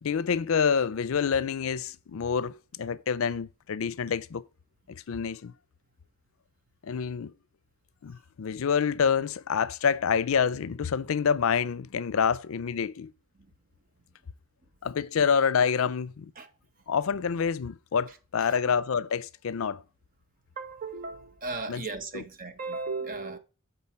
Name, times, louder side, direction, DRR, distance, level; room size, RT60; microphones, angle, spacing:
voice 1, 0.0-4.5 4.9-5.5 6.8-7.3 8.0-13.1 14.8-16.3 16.9-19.8 21.7-21.8 22.1-22.2, left 6 dB, 80° left, 0.5 m, -27 dB
voice 2, 20.6-23.4, right 3 dB, 40° right, 0.9 m, -36 dB
9.6 x 4.0 x 4.3 m
head